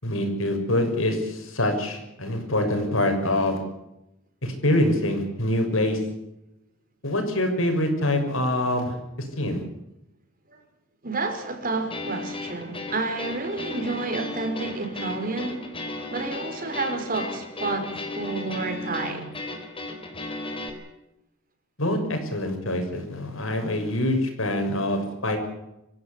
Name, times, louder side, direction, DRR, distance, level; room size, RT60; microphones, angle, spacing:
voice 1, 0.0-3.6 4.4-6.0 7.0-9.6 21.8-25.4, left 1 dB, 80° left, 6.5 m, -25 dB
voice 2, 11.0-15.7 16.1-19.3, right 3 dB, 45° right, 5.2 m, -30 dB
sound 1, 11.9-20.7, left 2 dB, 25° left, 4.0 m, -35 dB
26.0 x 15.5 x 8.5 m
head